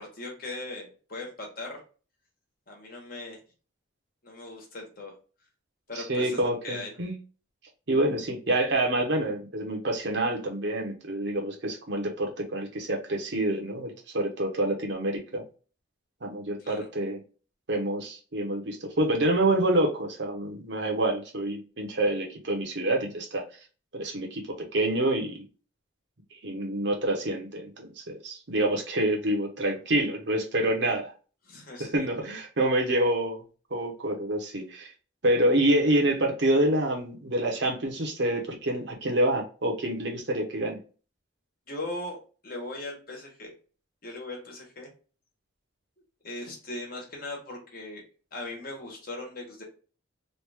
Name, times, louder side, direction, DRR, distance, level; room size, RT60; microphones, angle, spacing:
voice 1, 0.0-1.8 2.7-3.4 4.2-5.1 5.9-7.0 16.6-16.9 31.4-32.3 41.7-42.2 42.4-43.5 44.0-44.9 46.2-48.0 48.3-49.6, left 2 dB, 45° left, 0 dB, 1.2 m, -39 dB
voice 2, 5.9-7.1 7.9-15.4 16.2-17.2 17.7-23.4 23.9-24.4 24.7-25.4 26.4-31.1 31.8-33.4 33.7-34.9 35.2-40.8, right 1 dB, 60° right, 1 dB, 0.9 m, -27 dB
3.2 x 2.4 x 3.3 m, 0.36 s
head